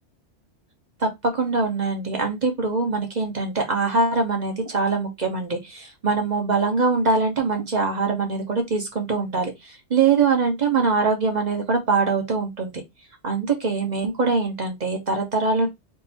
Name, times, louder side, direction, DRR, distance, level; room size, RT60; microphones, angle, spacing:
voice 1, 1.0-12.8 13.2-15.7, right 4 dB, 40° right, 1.1 m, -23 dB
3.7 x 2.6 x 4.2 m
omnidirectional pair, 1.2 m